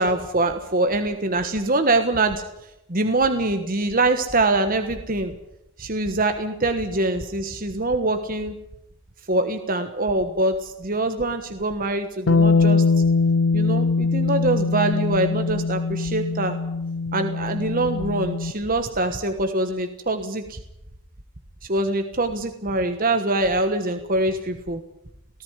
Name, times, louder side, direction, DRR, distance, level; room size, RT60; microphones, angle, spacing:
voice 1, 0.0-2.4 2.9-5.3 5.8-8.5 9.3-12.8 13.5-16.6 17.1-20.6 21.7-24.8, right 2 dB, 40° right, 7 dB, 1.3 m, -24 dB
Bass guitar, 12.3-18.5, left 4 dB, 60° left, 0.7 m, -22 dB
19.0 x 14.5 x 9.8 m, 0.86 s
head